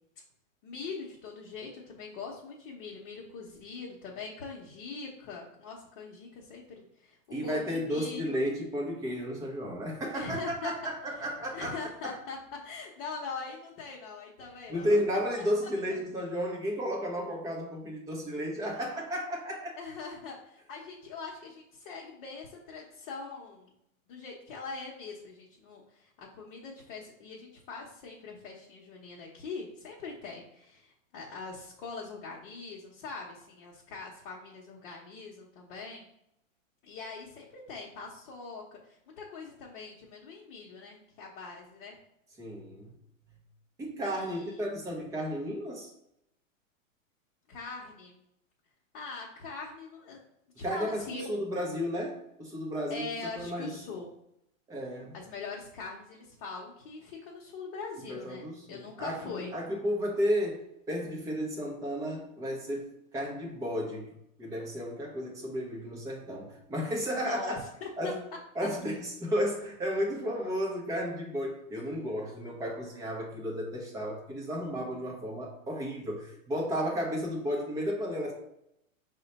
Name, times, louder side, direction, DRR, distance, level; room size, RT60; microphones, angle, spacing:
voice 1, 0.6-8.4 10.1-10.7 11.5-12.4 12.6-15.0 19.8-23.7 24.1-36.0 36.8-42.0 44.0-44.6 47.5-48.2 48.9-50.2 50.6-51.3 52.9-54.1 55.1-59.5 67.1-67.9, left 4 dB, 45° left, -3 dB, 0.8 m, -42 dB
voice 2, 7.3-11.7 12.0-12.2 14.7-19.8 42.4-42.9 43.8-45.9 50.6-53.1 53.4-53.8 54.7-55.2 58.1-60.6 60.9-67.6 68.0-68.2 68.6-78.3, equal, 10° right, -1 dB, 0.5 m, -33 dB
4.8 x 2.2 x 4.0 m, 0.80 s
hypercardioid pair, 145°, 40 cm